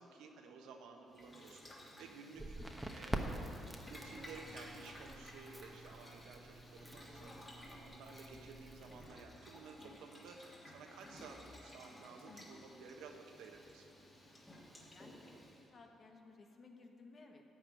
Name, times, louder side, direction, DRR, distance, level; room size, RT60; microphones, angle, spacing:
voice 1, 0.0-1.7 2.0-2.6 2.9-7.3 7.8-13.9, right 4 dB, 90° right, 3 dB, 1.1 m, -54 dB
Boiling, 1.1-15.6, left 1 dB, 25° left, 2.9 m, -56 dB
Crackle, 2.3-9.1, right 1 dB, 10° right, 1.1 m, -46 dB
voice 2, 12.1-12.6 14.9-17.4, left 3 dB, 45° left, 3 dB, 1.4 m, -59 dB
14.5 x 5.0 x 9.2 m, 2.9 s
cardioid pair, 90°, 0 cm